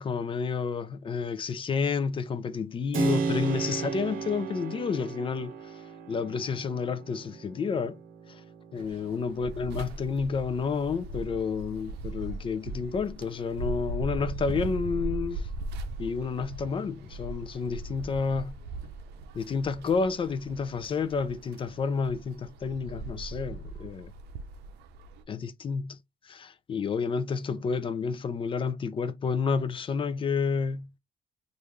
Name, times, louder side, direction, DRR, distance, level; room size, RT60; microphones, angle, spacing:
voice 1, 0.0-5.8 6.1-8.0 8.3-8.4 8.7-15.5 16.0-18.5 19.3-24.1 25.3-26.0 26.2-30.9, left 5 dB, 30° left, 0.5 m, -30 dB
Keyboard (musical), 2.9-11.5, right 5 dB, 55° right, 1.0 m, -36 dB
sound 1, 8.8-25.2, right 3 dB, 80° right, 0.6 m, -39 dB
3.5 x 2.5 x 3.1 m
cardioid pair, 110°, 17 cm